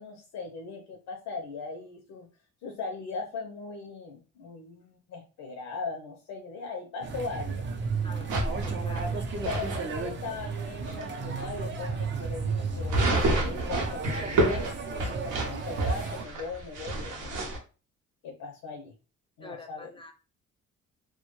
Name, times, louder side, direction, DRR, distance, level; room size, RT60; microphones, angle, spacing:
voice 1, 0.0-2.3 2.6-7.6 7.9-8.1 9.4-17.5 18.2-18.9 19.4-19.9, left 4 dB, 85° left, 3 dB, 0.5 m, -39 dB
sound 1, 7.0-16.2, right 4 dB, 40° right, 0.5 m, -34 dB
voice 2, 8.0-9.3 19.4-20.1, left 4 dB, 15° left, 4 dB, 0.4 m, -45 dB
sound 2, 8.3-9.8 10.4-10.5 10.9-11.0 11.4-11.5 12.9-17.6, right 2 dB, 80° right, 0.7 m, -29 dB
2.2 x 2.1 x 2.9 m, 0.35 s
cardioid pair, 90°, 30 cm